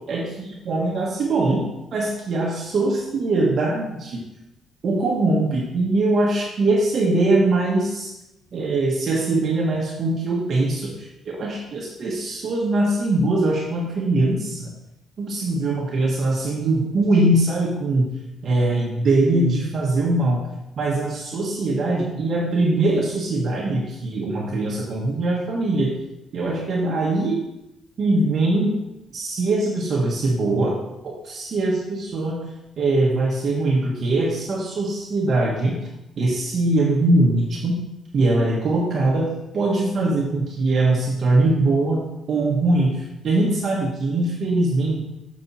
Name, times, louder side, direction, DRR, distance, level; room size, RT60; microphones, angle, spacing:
voice 1, 0.1-4.2 4.8-8.1 8.5-14.7 15.2-18.1 18.4-20.4 20.8-25.9 26.3-27.4 28.0-28.8 29.1-30.7 31.2-32.5 32.8-35.8 36.2-37.7 38.1-43.0 43.2-45.0, right 2 dB, 55° right, -2 dB, 1.4 m, -22 dB
6.9 x 5.4 x 4.4 m, 0.90 s
cardioid pair, 90°, 0 cm